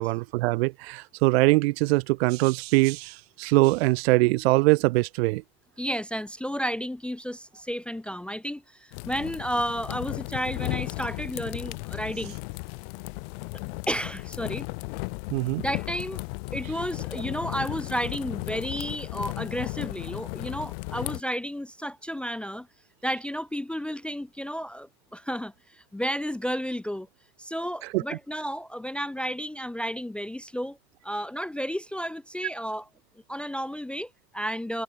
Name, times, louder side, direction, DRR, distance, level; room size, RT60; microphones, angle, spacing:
voice 1, 0.0-5.4 15.3-15.6 27.9-28.0, right 22 dB, 65° right, 0.8 m, -22 dB
voice 2, 5.8-12.3 13.9-14.7 15.6-16.2 16.5-22.7 23.0-27.1 27.4-30.8 31.0-32.9 33.3-34.8, equal, 5° left, 0.5 m, -32 dB
sound 1, 8.9-21.2, left 32 dB, 55° left, 2.8 m, -35 dB
supercardioid pair, 135°, 34 cm